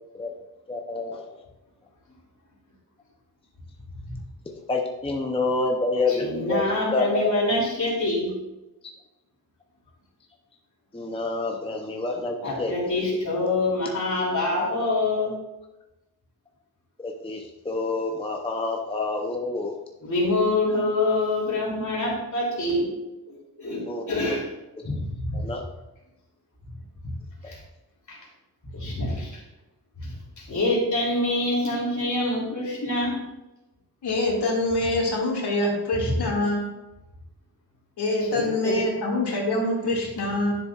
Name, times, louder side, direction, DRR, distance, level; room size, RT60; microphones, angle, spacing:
voice 1, 0.7-1.4 4.5-6.6 6.9-7.3 10.9-13.2 17.0-19.8 23.8-24.4 25.3-25.6 27.4-27.5, left 3 dB, 15° left, 1 dB, 0.6 m, -28 dB
voice 2, 6.2-8.3 12.4-15.4 20.0-22.9 23.3-24.4 24.8-25.5 27.4-27.6 28.1-28.2 28.7-29.4 30.0-33.2 36.0-36.1 38.3-38.8, left 2 dB, 45° left, -4 dB, 2.9 m, -26 dB
voice 3, 34.0-36.6 38.0-40.5, left 2 dB, 80° left, -2 dB, 2.2 m, -25 dB
10.5 x 6.9 x 2.4 m, 1.0 s
wide cardioid pair, 175°, 39 cm